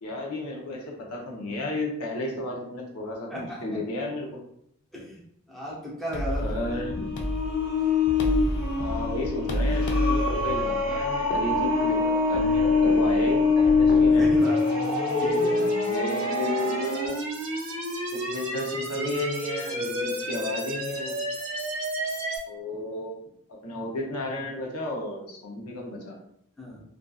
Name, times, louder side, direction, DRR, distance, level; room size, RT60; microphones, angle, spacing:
voice 1, 0.0-4.4 6.4-7.1 8.8-14.3 15.9-17.2 18.1-21.2 22.5-23.2 23.6-26.1, left 2 dB, 90° left, 0 dB, 0.6 m, -33 dB
voice 2, 3.3-3.8 4.9-5.2 5.5-6.6 14.2-14.8 15.2-15.7 26.6-26.8, equal, ahead, -6 dB, 0.5 m, -34 dB
sound 1, 6.1-14.4, equal, 50° left, 0.3 m, -31 dB
sound 2, 6.6-17.1, left 4 dB, 65° left, 1.1 m, -24 dB
sound 3, 14.4-22.4, right 1 dB, 70° right, 0.6 m, -32 dB
2.6 x 2.4 x 2.3 m, 0.72 s
head